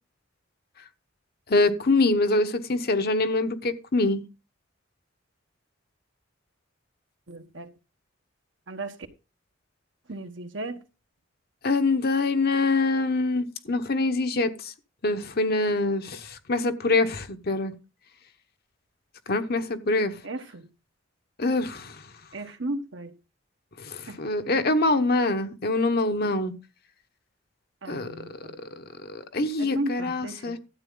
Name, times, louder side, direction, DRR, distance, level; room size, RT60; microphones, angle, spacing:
voice 1, 1.5-4.2 11.6-14.7 15.0-17.7 19.3-20.1 21.4-22.0 23.8-26.5 27.9-28.1 28.8-30.6, left 2 dB, 50° left, 1.1 m, -25 dB
voice 2, 7.3-7.7 8.7-9.0 10.1-10.8 20.2-20.7 22.3-23.2 24.1-24.2 27.8-28.6 29.6-30.6, right 2 dB, 65° right, 1.3 m, -35 dB
12.5 x 8.3 x 3.9 m
head